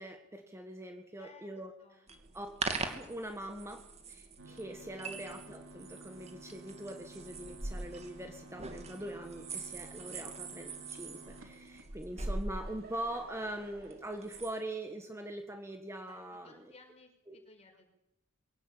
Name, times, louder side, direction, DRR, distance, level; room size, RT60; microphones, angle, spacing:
voice 1, 0.0-1.7 2.3-2.5 2.8-3.8 4.1-16.7 17.3-17.4, right 1 dB, 10° right, 4 dB, 1.7 m, -42 dB
voice 2, 1.2-2.1 4.9-5.0 10.0-10.3 16.1-17.9, left 3 dB, 30° left, 4 dB, 5.5 m, -59 dB
sound 1, 2.1-14.5, right 3 dB, 30° right, 2.6 m, -43 dB
sound 2, 4.4-12.4, right 1 dB, 60° right, 3.2 m, -53 dB
Laughter / Crowd, 12.1-16.7, right 3 dB, 45° right, 7.0 m, -58 dB
22.5 x 17.5 x 8.9 m, 0.84 s
head